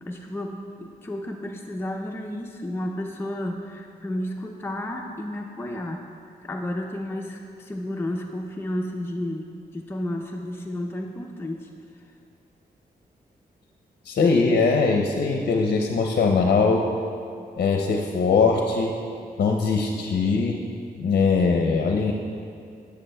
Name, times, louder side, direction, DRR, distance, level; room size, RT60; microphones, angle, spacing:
voice 1, 0.1-6.0 6.4-11.7, left 1 dB, 15° left, 1 dB, 0.5 m, -32 dB
voice 2, 14.0-16.8 17.6-18.9 19.4-20.6 21.0-22.1, left 4 dB, 60° left, 2 dB, 0.6 m, -21 dB
11.0 x 6.7 x 2.2 m, 2.4 s
cardioid pair, 60°, 17 cm